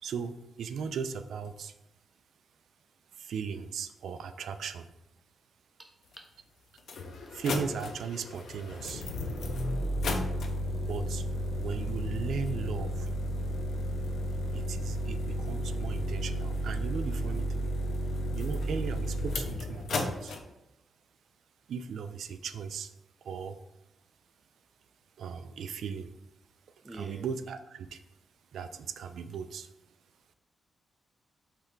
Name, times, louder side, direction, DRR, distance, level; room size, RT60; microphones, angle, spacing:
voice 1, 0.0-1.7 3.1-4.9 7.3-9.1 10.8-11.3 11.6-13.1 14.5-17.7 18.3-20.4 21.7-22.9 23.2-23.6 25.2-26.1 26.8-28.0 28.5-29.7, right 6 dB, 75° right, 10 dB, 0.3 m, -37 dB
voice 2, 5.8-6.3 9.6-9.8 26.8-27.3, right 2 dB, 15° right, 4 dB, 0.5 m, -47 dB
sound 1, 6.1-6.2 6.8-20.4, equal, 70° left, 0.5 m, -33 dB
4.3 x 3.3 x 3.7 m, 0.90 s
wide cardioid pair, 140°, 0 cm